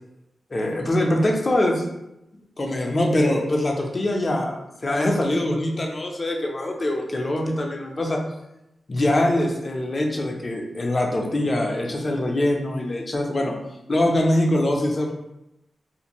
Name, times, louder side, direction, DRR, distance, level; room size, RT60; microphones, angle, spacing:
voice 1, 0.5-1.9 2.6-8.2 8.9-13.5 13.9-15.1, left 1 dB, 35° left, 1 dB, 0.5 m, -23 dB
2.5 x 2.5 x 2.9 m, 0.88 s
wide cardioid pair, 100°, 0 cm